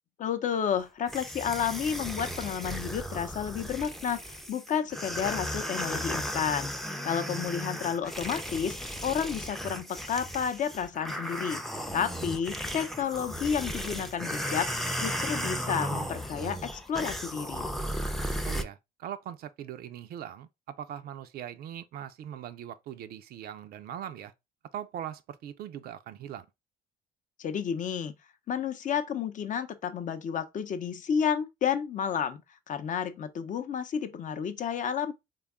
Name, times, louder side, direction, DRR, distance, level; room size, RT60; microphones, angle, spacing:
voice 1, 0.2-6.7 7.0-8.8 9.0-11.6 11.9-14.7 15.0-17.7 27.4-28.1 28.5-32.4 32.7-35.1, left 7 dB, 45° left, 0.6 m, -31 dB
sound 1, 1.1-18.6, equal, ahead, 0.4 m, -35 dB
voice 2, 18.4-24.3 24.7-26.5, right 10 dB, 60° right, 0.4 m, -41 dB
3.5 x 2.3 x 3.4 m
supercardioid pair, 85°, 18 cm